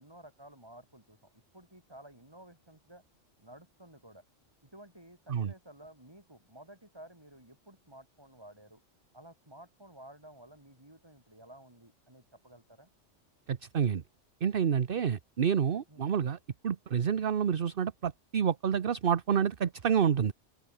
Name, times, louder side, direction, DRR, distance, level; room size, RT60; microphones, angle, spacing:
voice 1, 0.0-3.0 3.4-4.2 4.6-8.8 9.1-12.9 15.9-16.1, right 1 dB, 20° right, 4.6 m, -53 dB
voice 2, 13.5-14.0 14.4-16.4 16.6-20.3, right 7 dB, 50° right, 1.0 m, -28 dB
open air
omnidirectional pair, 1.3 m